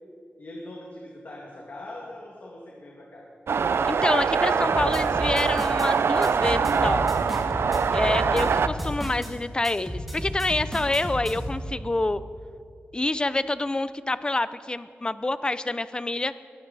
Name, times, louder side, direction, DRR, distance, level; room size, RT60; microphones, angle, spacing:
voice 1, 0.4-3.2, left 1 dB, 55° left, -3 dB, 2.0 m, -41 dB
sound 1, 3.5-8.7, right 5 dB, 85° right, 0.5 m, -23 dB
voice 2, 3.9-7.1 7.9-12.2 12.9-16.3, left 2 dB, 20° left, 14 dB, 0.4 m, -27 dB
sound 2, 4.7-5.9 6.2-9.3 9.6-11.6, equal, ahead, 1.9 m, -33 dB
20.5 x 13.0 x 4.1 m, 2.4 s
wide cardioid pair, 130°, 4 cm